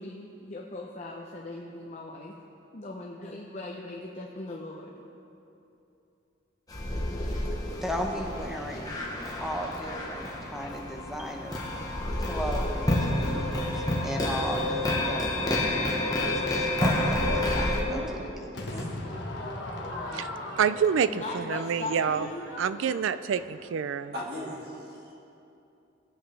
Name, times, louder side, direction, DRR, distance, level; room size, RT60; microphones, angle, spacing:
voice 1, 0.0-2.4 2.7-4.9 21.1-22.5 22.7-22.8, left 2 dB, 35° left, -2 dB, 0.7 m, -39 dB
sound 1, 6.7-17.8, left 1 dB, 20° left, 1.1 m, -29 dB
voice 2, 7.8-9.0 9.4-11.6 12.2-18.2, equal, ahead, 1 dB, 0.8 m, -36 dB
voice 3, 17.9-20.2 24.1-25.1, equal, 50° right, -5 dB, 1.8 m, -40 dB
Crowd / Fireworks, 18.5-23.8, left 1 dB, 55° left, 1.2 m, -39 dB
voice 4, 20.6-22.3 22.6-24.1, right 7 dB, 75° right, 13 dB, 0.4 m, -27 dB
18.5 x 8.1 x 3.3 m, 2.8 s
head